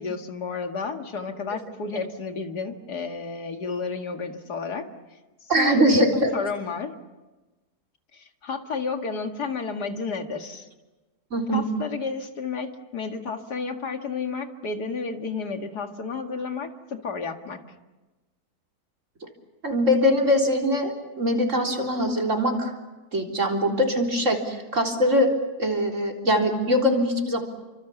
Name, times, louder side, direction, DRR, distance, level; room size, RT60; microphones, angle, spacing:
voice 1, 0.0-4.9 5.6-6.9 8.1-10.7 11.5-17.6, left 4 dB, 90° left, 5 dB, 2.5 m, -31 dB
voice 2, 5.5-6.3 11.3-11.6 19.2-19.3 19.6-20.9 21.2-22.7 23.1-25.3 25.6-27.4, equal, 50° right, 1 dB, 4.1 m, -22 dB
29.5 x 25.5 x 7.1 m, 1.2 s
omnidirectional pair, 1.7 m